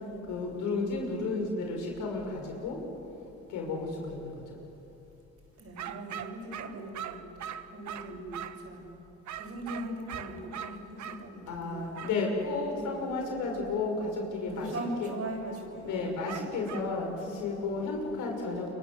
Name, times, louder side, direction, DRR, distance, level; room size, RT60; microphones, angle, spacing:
voice 1, 0.3-2.8 3.5-4.3 11.5-14.7 15.0-15.1 15.8-18.7, left 3 dB, 90° left, 1 dB, 5.9 m, -32 dB
voice 2, 5.6-7.2 7.7-8.9 9.4-12.0 12.8-13.1 14.5-16.0, right 1 dB, 50° right, 1 dB, 7.2 m, -40 dB
sound 1, 5.8-8.7 9.3-11.2 11.9-12.2 16.3-16.9, right 10 dB, 70° right, 1.2 m, -41 dB
28.5 x 24.0 x 8.0 m, 2.9 s
cardioid pair, 90°, 30 cm